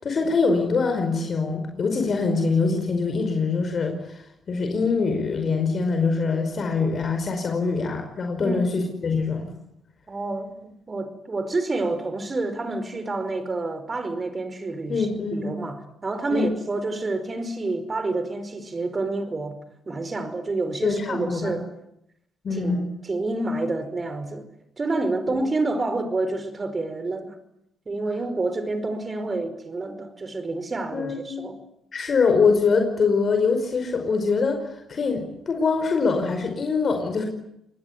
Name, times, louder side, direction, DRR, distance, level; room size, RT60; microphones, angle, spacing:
voice 1, 0.0-9.5 14.9-15.5 16.3-16.5 20.8-21.6 22.4-22.9 25.3-25.4 30.9-31.5 31.9-37.3, left 4 dB, 45° left, 5 dB, 5.2 m, -24 dB
voice 2, 8.4-8.8 10.1-19.6 19.9-21.7 22.5-24.5 24.8-27.4 27.8-31.6, right 2 dB, 30° right, 11 dB, 5.0 m, -28 dB
27.0 x 20.5 x 9.6 m, 0.80 s
cardioid pair, 90°, 0 cm